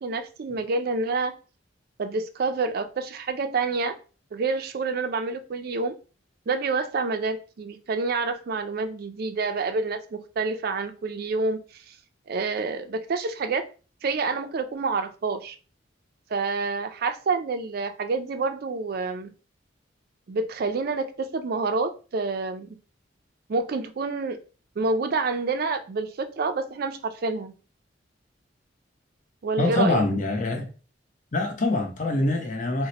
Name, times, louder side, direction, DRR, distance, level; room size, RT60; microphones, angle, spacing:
voice 1, 0.0-1.3 2.0-4.0 4.3-5.9 6.5-11.6 11.9-12.0 12.3-13.7 14.0-15.6 16.3-19.3 20.3-22.8 23.5-24.4 24.8-27.5 29.4-30.0, right 4 dB, 50° right, 0.4 m, -28 dB
voice 2, 29.6-30.7 31.3-32.9, left 2 dB, 40° left, 0.7 m, -24 dB
2.8 x 2.1 x 4.0 m
head